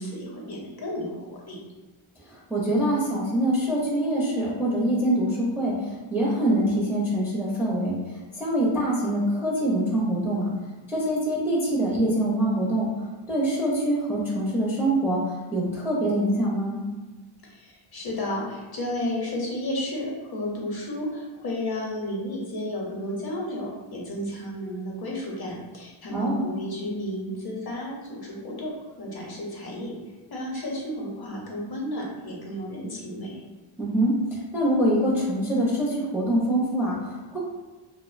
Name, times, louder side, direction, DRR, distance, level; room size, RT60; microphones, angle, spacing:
voice 1, 0.0-1.6 17.4-29.9 30.3-33.4, left 1 dB, 50° left, -2 dB, 0.6 m, -32 dB
voice 2, 2.2-10.5 10.9-16.8 26.1-26.5 33.8-37.4, right 1 dB, 5° right, -5 dB, 0.4 m, -25 dB
2.4 x 2.0 x 2.4 m, 1.2 s
wide cardioid pair, 105°, 50 cm